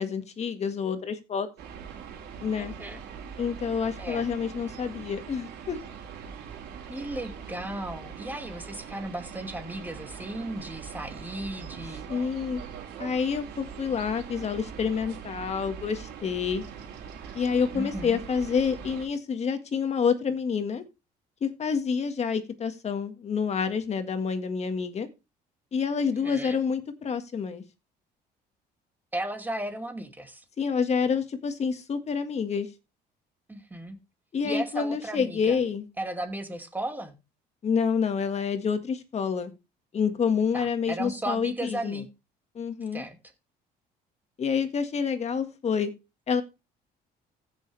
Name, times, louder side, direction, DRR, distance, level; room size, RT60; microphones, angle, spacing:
voice 1, 0.0-1.5 2.4-2.7 3.4-5.8 12.1-12.6 13.0-16.6 17.3-20.8 21.4-25.1 25.7-27.6 30.6-32.7 34.3-35.9 37.6-39.5 39.9-42.0 42.6-43.0 44.4-45.9 46.3-46.4, left 6 dB, 40° left, 8 dB, 1.8 m, -28 dB
sound 1, 1.6-19.1, right 7 dB, 75° right, 3.4 m, -42 dB
voice 2, 2.5-3.0 4.0-4.3 6.9-12.3 17.2-17.4 17.7-18.2 26.0-26.6 29.1-30.4 33.5-34.0 34.4-35.6 36.0-37.1 40.5-42.1 42.9-43.2, right 1 dB, 10° right, 5 dB, 2.5 m, -35 dB
15.5 x 6.6 x 3.4 m, 0.27 s
cardioid pair, 110°, 17 cm